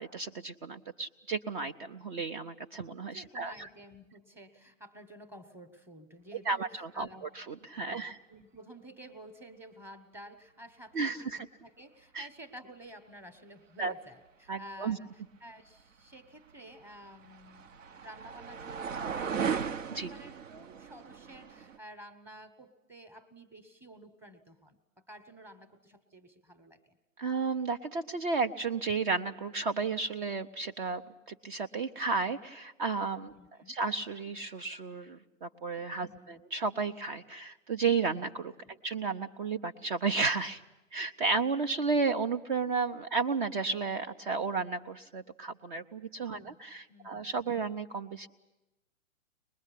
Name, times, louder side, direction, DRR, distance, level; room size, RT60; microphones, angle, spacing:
voice 1, 0.0-3.7 6.5-8.2 10.9-11.5 12.1-12.3 13.8-13.9 14.5-15.0 19.9-20.1 27.2-31.0 31.3-33.3 33.7-38.5 38.8-40.6 40.9-48.3, right 4 dB, 40° right, 6 dB, 0.7 m, -33 dB
voice 2, 3.1-7.2 7.7-27.0 33.3-33.8 36.0-36.4 38.6-38.8 46.3-46.6 46.9-47.3, equal, 5° right, 11 dB, 1.1 m, -52 dB
sound 1, 16.5-21.8, right 7 dB, 70° right, 1.1 m, -37 dB
24.0 x 21.0 x 8.4 m, 1.0 s
hypercardioid pair, 140°, 41 cm